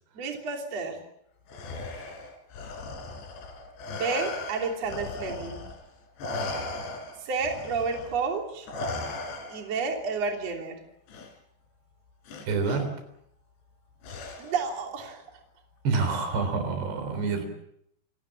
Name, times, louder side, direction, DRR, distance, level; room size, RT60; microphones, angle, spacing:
voice 1, 0.1-1.0 3.9-5.6 7.2-8.7 9.5-10.8 14.4-15.4, right 4 dB, 40° right, 2 dB, 4.0 m, -31 dB
Respiratory sounds, 1.5-5.8 6.2-9.8 11.1-11.3 12.3-12.8 14.0-14.7, left 2 dB, 85° left, 5.6 m, -37 dB
voice 2, 12.5-13.0 15.8-17.5, right 4 dB, 80° right, 8 dB, 5.8 m, -27 dB
29.0 x 17.5 x 7.5 m, 0.75 s
omnidirectional pair, 4.8 m